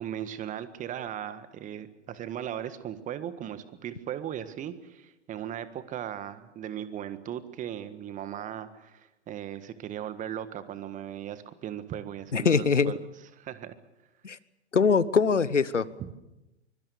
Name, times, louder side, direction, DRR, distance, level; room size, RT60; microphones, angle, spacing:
voice 1, 0.0-13.0 13.4-13.7 16.0-16.1, right 10 dB, 20° right, 12 dB, 1.6 m, -37 dB
voice 2, 12.3-12.9 14.2-14.4 14.7-15.9, left 5 dB, 85° left, 18 dB, 1.1 m, -22 dB
24.5 x 23.0 x 7.0 m, 0.99 s
figure-of-eight pair, 110°, 36 cm